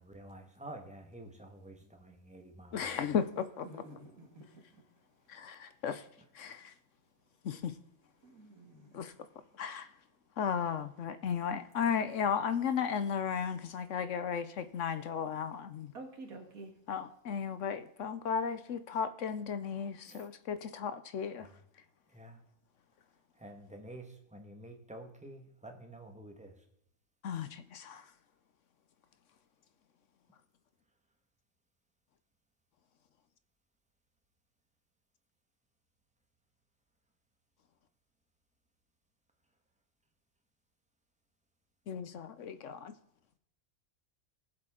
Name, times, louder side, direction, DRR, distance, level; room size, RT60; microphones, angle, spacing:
voice 1, 0.0-3.1 20.0-20.3 21.4-21.6 22.1-22.4 23.3-26.6, right 1 dB, 5° right, 3 dB, 1.5 m, -50 dB
voice 2, 2.7-3.7 5.3-6.0 6.3-6.7 7.4-7.7 8.9-9.1 9.6-9.9 10.4-15.9 16.9-21.5 27.2-28.0 41.9-42.9, left 7 dB, 65° left, 12 dB, 1.0 m, -35 dB
voice 3, 3.6-4.8 8.2-9.1 11.8-12.1 15.9-16.7, right 2 dB, 80° right, 4 dB, 2.3 m, -50 dB
19.0 x 7.7 x 3.7 m, 0.76 s
omnidirectional pair, 1.5 m